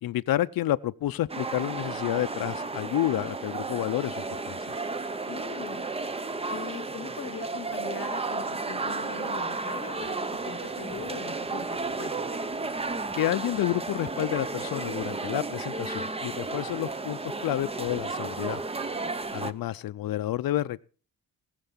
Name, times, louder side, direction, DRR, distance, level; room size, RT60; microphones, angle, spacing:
voice 1, 0.0-4.6 13.2-18.6 19.3-20.8, left 14 dB, 90° left, 0.6 m, -29 dB
sound 1, 1.3-19.5, right 3 dB, 15° right, 0.6 m, -33 dB
voice 2, 5.3-6.1 6.5-10.2 10.4-12.4, left 8 dB, 40° left, 0.9 m, -41 dB
19.0 x 6.8 x 7.2 m
wide cardioid pair, 180°, 34 cm